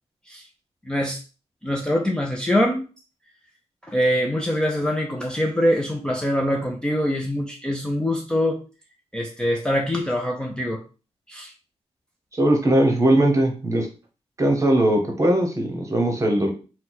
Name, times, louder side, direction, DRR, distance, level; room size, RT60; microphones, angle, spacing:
voice 1, 0.9-1.2 1.6-2.8 3.9-8.6 9.1-10.8 11.3-11.5, equal, 5° left, 0 dB, 0.5 m, -23 dB
voice 2, 12.4-13.9 14.4-16.5, right 1 dB, 25° right, 3 dB, 1.0 m, -19 dB
4.4 x 2.2 x 4.0 m, 0.34 s
wide cardioid pair, 150°, 11 cm